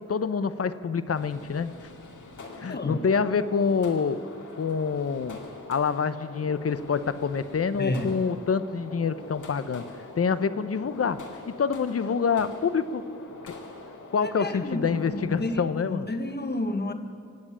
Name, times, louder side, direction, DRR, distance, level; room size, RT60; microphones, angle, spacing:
voice 1, 0.0-1.9 2.6-4.2 4.6-5.4 5.7-13.0 13.4-13.5 14.1-16.1, left 5 dB, 50° left, 14 dB, 0.8 m, -27 dB
sound 1, 1.1-15.6, left 3 dB, 75° left, 2.2 m, -44 dB
voice 2, 2.7-3.0 7.8-8.2 14.2-16.9, left 1 dB, 35° left, 7 dB, 1.5 m, -31 dB
19.5 x 7.9 x 8.6 m, 2.3 s
cardioid pair, 65°, 31 cm